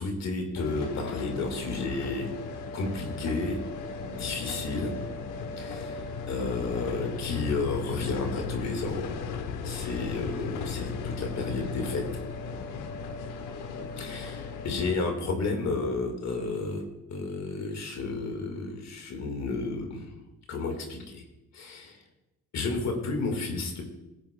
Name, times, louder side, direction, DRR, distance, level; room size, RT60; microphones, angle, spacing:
voice 1, 0.0-2.3 2.7-3.6 4.0-4.9 5.6-5.9 6.3-9.2 9.6-12.0 14.0-16.8 17.1-20.1 20.5-21.2 21.5-22.0 22.5-23.8, left 3 dB, 65° left, 3 dB, 1.8 m, -32 dB
sound 1, 0.6-14.9, left 5 dB, 90° left, 0.9 m, -36 dB
16.5 x 7.3 x 2.2 m, 0.97 s
cardioid pair, 90°, 30 cm